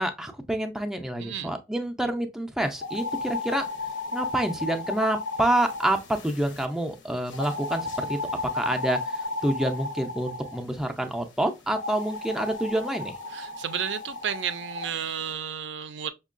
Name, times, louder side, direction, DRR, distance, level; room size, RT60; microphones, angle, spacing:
voice 1, 0.0-3.6 4.1-8.2 8.5-13.2, right 1 dB, 5° right, 0.4 m, -28 dB
sound 1, 2.8-6.7 7.3-10.6 11.7-14.9, left 3 dB, 75° left, 0.7 m, -34 dB
voice 2, 13.3-16.1, right 8 dB, 70° right, 0.4 m, -32 dB
5.3 x 2.2 x 2.4 m
head